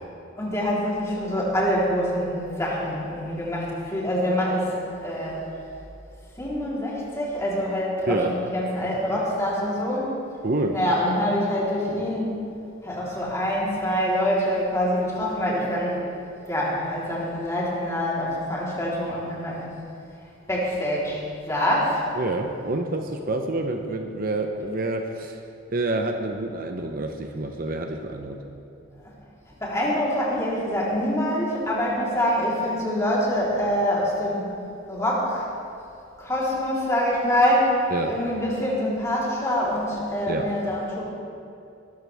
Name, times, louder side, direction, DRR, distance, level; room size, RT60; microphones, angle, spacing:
voice 1, 0.4-4.7 5.0-5.4 6.4-10.1 10.7-12.3 12.8-16.0 16.5-19.7 20.5-21.2 21.5-22.0 29.6-34.5 34.9-35.5 36.2-41.0, equal, 15° left, -6 dB, 3.6 m, -25 dB
voice 2, 10.4-10.8 22.1-25.4 25.7-28.4 37.9-38.2 40.3-40.5, right 2 dB, 45° right, 4 dB, 0.8 m, -27 dB
21.5 x 13.5 x 3.5 m, 2.6 s
head